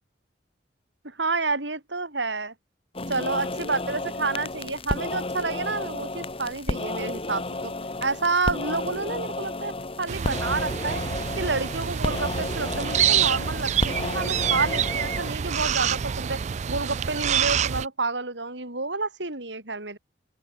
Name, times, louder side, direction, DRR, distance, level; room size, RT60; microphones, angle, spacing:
voice 1, 1.0-2.5 3.1-7.7 8.0-9.7 10.0-11.0 11.4-16.4 16.7-20.0, right 3 dB, 75° right, 4.8 m, -29 dB
sound 1, 2.9-15.3, left 2 dB, 30° left, 1.9 m, -32 dB
sound 2, 10.1-17.9, right 8 dB, 40° right, 0.4 m, -26 dB
open air
head